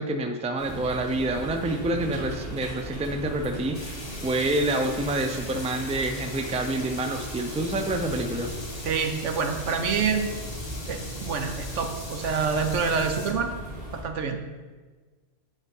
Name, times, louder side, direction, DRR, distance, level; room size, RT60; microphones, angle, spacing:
voice 1, 0.0-3.9 4.2-8.5, right 1 dB, 10° right, 5 dB, 0.4 m, -27 dB
sound 1, 0.6-14.0, right 1 dB, 50° right, 2.9 m, -37 dB
sound 2, 3.7-13.3, left 2 dB, 25° left, 1.2 m, -41 dB
voice 2, 8.8-10.3 10.9-13.5 13.9-14.4, right 5 dB, 80° right, 6 dB, 1.2 m, -27 dB
8.3 x 5.6 x 5.4 m, 1.4 s
omnidirectional pair, 1.2 m